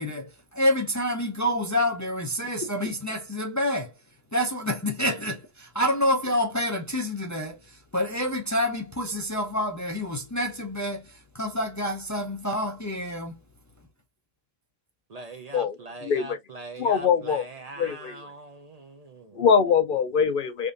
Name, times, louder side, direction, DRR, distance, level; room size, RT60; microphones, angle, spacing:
voice 1, 0.0-3.9 4.3-13.4, left 1 dB, 25° left, 0.4 m, -28 dB
voice 2, 15.1-19.5, right 3 dB, 45° right, 0.6 m, -42 dB
voice 3, 16.0-16.4 16.8-17.4 17.8-18.1 19.4-20.7, left 6 dB, 60° left, 0.7 m, -23 dB
3.5 x 2.6 x 2.4 m
omnidirectional pair, 1.0 m